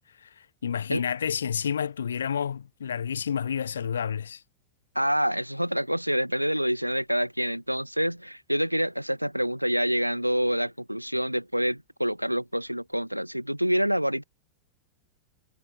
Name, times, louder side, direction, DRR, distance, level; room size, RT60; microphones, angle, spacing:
voice 1, 0.2-4.4, left 7 dB, 70° left, 0.4 m, -30 dB
voice 2, 4.9-14.2, equal, 90° right, 0.6 m, -27 dB
figure-of-eight pair, 90°, 0 cm